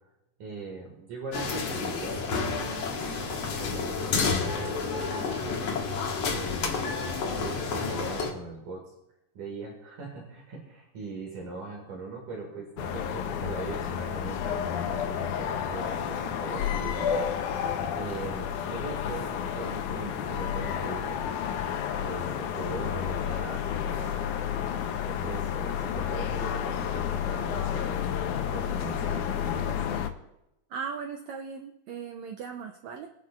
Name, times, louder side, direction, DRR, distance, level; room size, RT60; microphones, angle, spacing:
voice 1, 0.4-2.9 3.4-5.6 6.3-6.8 7.2-8.8 9.3-17.3 17.7-21.3 22.0-24.3 24.9-28.1 28.5-29.8, right 3 dB, 65° right, -1 dB, 3.2 m, -40 dB
sound 1, 1.3-8.3, left 4 dB, 55° left, 2.2 m, -30 dB
sound 2, 12.8-30.1, left 9 dB, 75° left, 2.0 m, -31 dB
voice 2, 30.7-33.1, right 6 dB, 80° right, 4 dB, 1.6 m, -38 dB
21.5 x 9.9 x 2.4 m, 0.88 s
omnidirectional pair, 4.0 m